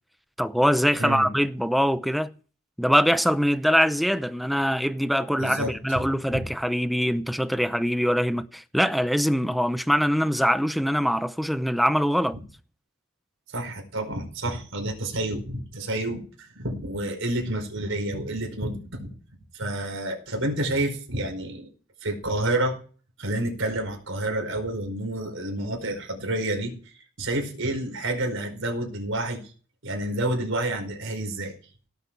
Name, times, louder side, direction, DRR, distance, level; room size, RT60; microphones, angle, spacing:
voice 1, 0.4-2.3 2.8-12.4, equal, ahead, 0.6 m, -23 dB
voice 2, 1.0-1.3 5.4-6.0 6.3-6.4 13.5-19.1 19.5-21.7 22.0-22.7 23.2-29.4 29.8-31.5, right 1 dB, 70° right, 5.0 m, -29 dB
17.5 x 8.3 x 4.7 m
head